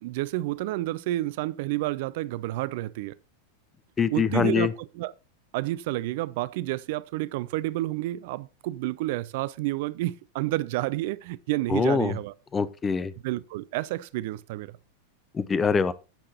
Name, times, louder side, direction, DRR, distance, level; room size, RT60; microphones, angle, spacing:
voice 1, 0.0-3.2 4.1-5.1 5.5-12.3 13.2-14.7, right 17 dB, 50° right, 0.4 m, -30 dB
voice 2, 4.0-4.7 11.7-12.2 12.5-13.1 15.3-15.9, left 6 dB, 20° left, 0.6 m, -24 dB
16.0 x 5.7 x 2.8 m
figure-of-eight pair, 90°, 0 cm